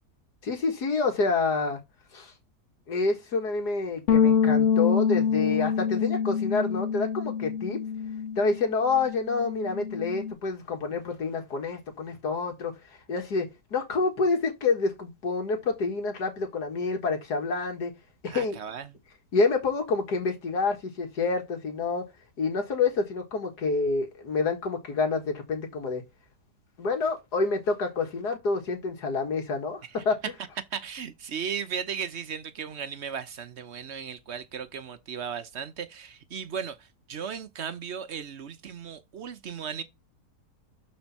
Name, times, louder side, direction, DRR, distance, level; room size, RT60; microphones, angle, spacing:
voice 1, 0.4-1.8 2.1-2.3 2.9-7.8 8.4-12.7 13.1-17.9 18.2-18.6 19.3-22.1 22.4-26.0 26.8-30.2, left 4 dB, 80° left, 2.4 m, -28 dB
sound 1, 4.1-8.6 8.9-10.3, left 7 dB, 55° left, 1.3 m, -26 dB
voice 2, 18.3-19.0 30.7-36.8 37.1-39.8, right 7 dB, 50° right, 1.0 m, -36 dB
12.0 x 4.5 x 4.2 m
omnidirectional pair, 1.7 m